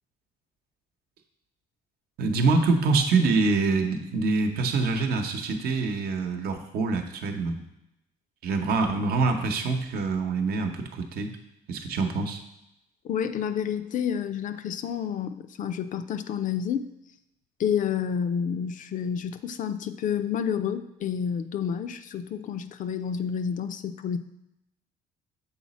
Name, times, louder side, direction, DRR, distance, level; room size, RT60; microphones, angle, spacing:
voice 1, 2.2-7.6 8.4-11.3 11.7-12.4, right 3 dB, 65° right, 5 dB, 0.9 m, -25 dB
voice 2, 13.0-16.9 17.6-24.2, left 8 dB, 50° left, 10 dB, 0.5 m, -29 dB
7.2 x 4.0 x 4.2 m, 0.85 s
cardioid pair, 110°, 17 cm